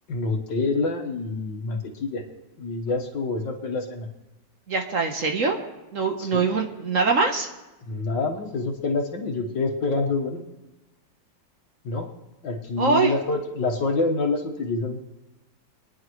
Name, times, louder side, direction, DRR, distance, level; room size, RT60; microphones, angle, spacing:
voice 1, 0.1-2.2 2.6-4.1 6.2-6.4 7.9-10.4 11.8-12.1 12.4-15.0, left 3 dB, 75° left, 2 dB, 2.1 m, -27 dB
voice 2, 4.7-5.6 5.9-7.5 12.8-13.1, right 4 dB, 50° right, 3 dB, 1.3 m, -23 dB
24.5 x 10.5 x 3.1 m, 1.0 s
omnidirectional pair, 2.0 m